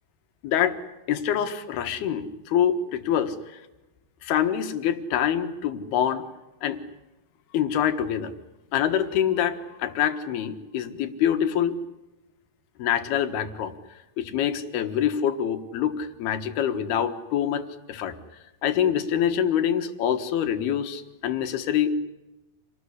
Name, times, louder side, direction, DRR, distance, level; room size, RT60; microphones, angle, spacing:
voice 1, 0.4-0.8 1.1-3.6 4.2-6.2 6.6-6.8 7.5-8.3 8.7-11.8 12.8-13.7 14.2-18.2 18.6-22.0, left 9 dB, 75° left, 8 dB, 3.4 m, -25 dB
27.5 x 19.5 x 9.8 m, 1.0 s
omnidirectional pair, 4.6 m